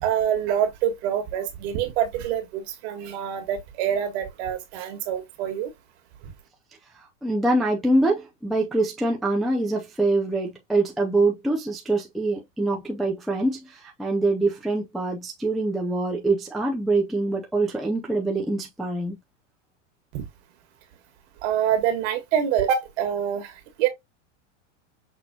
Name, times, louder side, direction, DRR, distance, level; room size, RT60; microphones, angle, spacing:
voice 1, 0.0-5.7 20.1-20.2 21.4-23.5 23.8-23.9, right 9 dB, 55° right, 1.7 m, -25 dB
voice 2, 7.2-19.2, right 2 dB, ahead, 0.4 m, -24 dB
6.1 x 3.0 x 2.7 m
supercardioid pair, 145°, 38 cm